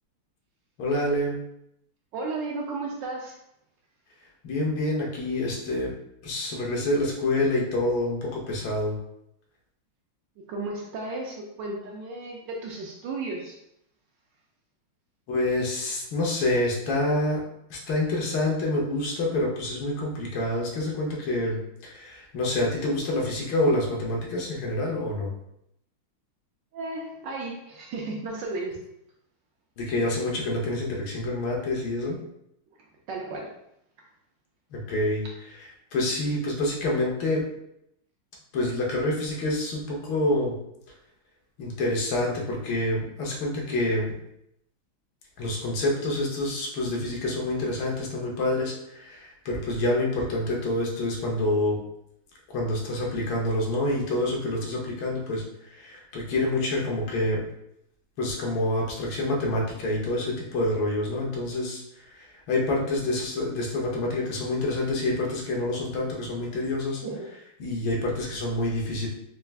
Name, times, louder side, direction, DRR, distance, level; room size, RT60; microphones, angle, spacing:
voice 1, 0.8-1.4 4.4-5.9 6.2-9.0 15.3-17.4 17.7-25.3 29.8-32.2 34.7-35.2 35.9-37.4 38.5-40.6 41.6-44.1 45.4-51.8 52.5-55.4 55.8-57.4 58.2-61.8 62.5-67.0 67.6-69.1, left 1 dB, 75° left, -2 dB, 1.7 m, -27 dB
voice 2, 2.1-3.4 10.4-13.6 26.7-28.8 33.1-33.5 67.0-67.3, right 3 dB, 70° right, -1 dB, 1.1 m, -34 dB
4.5 x 2.4 x 3.4 m, 0.78 s
omnidirectional pair, 2.3 m